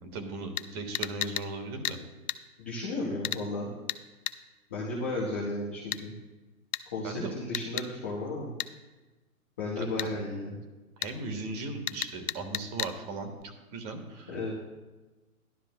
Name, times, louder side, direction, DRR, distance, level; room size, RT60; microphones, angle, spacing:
voice 1, 0.0-2.0 7.0-7.3 9.8-10.2 11.0-13.3 13.7-14.3, right 3 dB, 25° right, 5 dB, 1.5 m, -37 dB
sound 1, 0.6-0.7 0.9-1.5 1.8-2.0 2.3-2.4 3.2-3.4 3.9-4.0 4.3-4.4 5.9-6.0 6.7-6.9 7.5-7.9 8.6-8.7 10.0-10.1 11.0-11.1 11.9-12.9 13.4-13.5, left 10 dB, 80° left, 0.7 m, -33 dB
voice 2, 2.6-3.7 4.7-6.1 6.9-8.5 9.6-10.6 14.3-14.5, left 2 dB, 10° left, -6 dB, 0.4 m, -34 dB
14.5 x 12.0 x 2.2 m, 1.2 s
hypercardioid pair, 150°, 44 cm